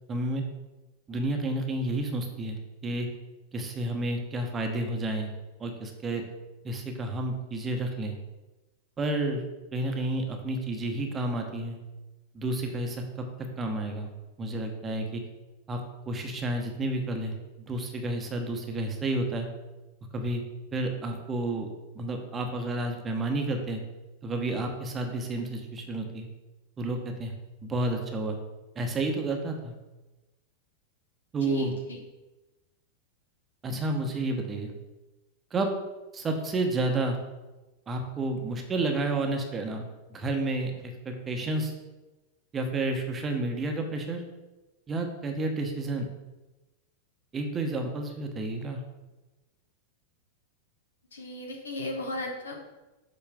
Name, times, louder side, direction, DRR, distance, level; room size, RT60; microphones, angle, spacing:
voice 1, 0.1-0.4 1.1-3.1 3.5-5.3 5.6-6.2 6.6-8.2 9.0-9.4 9.7-11.8 12.3-13.2 13.6-14.1 14.4-15.2 15.7-15.8 16.1-17.3 17.7-19.5 20.1-20.4 20.7-21.7 21.9-23.8 24.2-26.3 26.8-27.3 27.6-28.4 28.8-29.7 31.3-31.7 33.6-34.7 35.5-35.7 36.1-37.2 37.9-41.7 42.5-44.2 44.9-46.1 47.3-48.8, right 2 dB, 20° right, 4 dB, 1.0 m, -30 dB
voice 2, 31.4-32.0 51.1-52.6, left 1 dB, 70° left, 1 dB, 1.2 m, -36 dB
7.3 x 4.3 x 3.6 m, 1.1 s
figure-of-eight pair, 90°, 0 cm